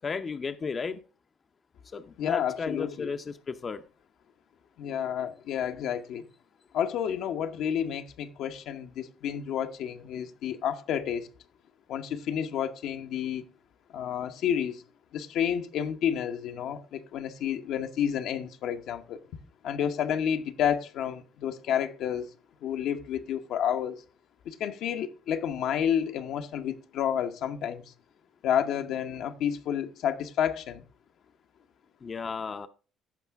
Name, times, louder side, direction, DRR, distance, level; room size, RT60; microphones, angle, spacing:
voice 1, 0.0-1.0 1.9-3.8 32.0-32.7, left 5 dB, 35° left, 0.6 m, -34 dB
voice 2, 2.2-3.1 4.8-6.3 6.7-11.3 11.9-13.4 13.9-14.8 15.1-19.2 19.6-22.3 22.6-24.0 24.4-27.9 28.4-30.8, left 9 dB, 75° left, 0.9 m, -30 dB
14.5 x 5.4 x 3.5 m
cardioid pair, 85°, 0 cm